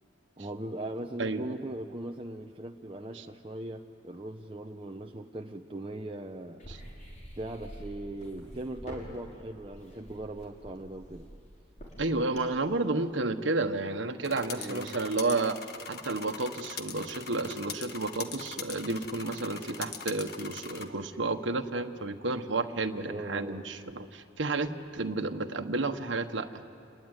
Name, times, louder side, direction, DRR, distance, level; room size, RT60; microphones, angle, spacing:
voice 1, 0.4-6.6 7.4-11.3 14.5-15.0 23.0-23.6, right 1 dB, 30° right, 3 dB, 0.8 m, -39 dB
voice 2, 1.2-1.6 3.1-3.2 6.7-6.8 12.0-15.6 15.9-26.6, right 3 dB, 80° right, 6 dB, 1.3 m, -31 dB
sound 1, 6.6-12.7, equal, 40° left, 5.9 m, -46 dB
sound 2, 14.2-20.9, left 6 dB, 55° left, 1.6 m, -42 dB
28.5 x 21.0 x 9.7 m, 2.4 s
head